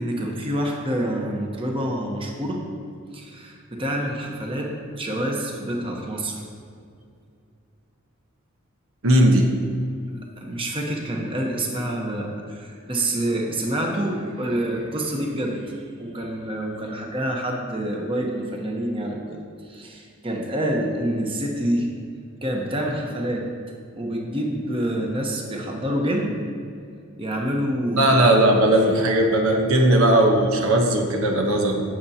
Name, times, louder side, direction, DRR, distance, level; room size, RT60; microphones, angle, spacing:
voice 1, 0.0-2.7 3.1-6.4 10.4-19.4 19.6-21.9 22.4-23.5 24.0-26.4 27.2-28.1, right 1 dB, 25° right, 0 dB, 1.0 m, -27 dB
voice 2, 9.0-9.5 28.0-31.8, right 1 dB, 80° right, 2 dB, 1.1 m, -18 dB
16.5 x 6.7 x 2.9 m, 2.4 s
head